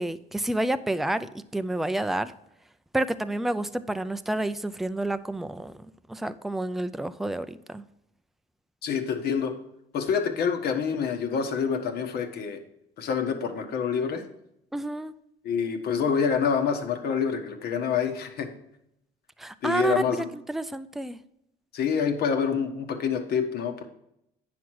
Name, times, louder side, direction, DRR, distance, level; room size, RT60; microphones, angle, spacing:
voice 1, 0.0-2.3 2.9-5.7 6.1-7.8 14.7-15.1 19.4-20.0 20.5-21.2, right 1 dB, ahead, 11 dB, 0.4 m, -29 dB
voice 2, 8.8-9.5 9.9-12.6 13.0-14.2 15.4-18.5 19.6-20.3 21.7-23.8, left 6 dB, 65° left, 6 dB, 1.3 m, -27 dB
9.4 x 6.0 x 4.6 m, 0.80 s
cardioid pair, 110°, 17 cm